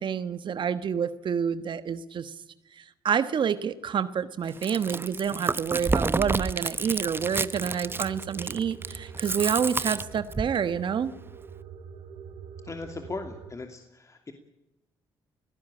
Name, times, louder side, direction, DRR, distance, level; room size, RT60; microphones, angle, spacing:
voice 1, 0.0-2.4 2.7-11.1, right 7 dB, 60° right, 12 dB, 1.3 m, -28 dB
Chewing mastication, 4.5-10.6, right 3 dB, 25° right, 0.9 m, -30 dB
sound 1, 7.1-13.5, right 6 dB, 80° right, 4.2 m, -44 dB
voice 2, 12.6-14.3, left 3 dB, 35° left, 5 dB, 2.7 m, -38 dB
21.5 x 16.0 x 8.8 m, 0.92 s
supercardioid pair, 65°, 9 cm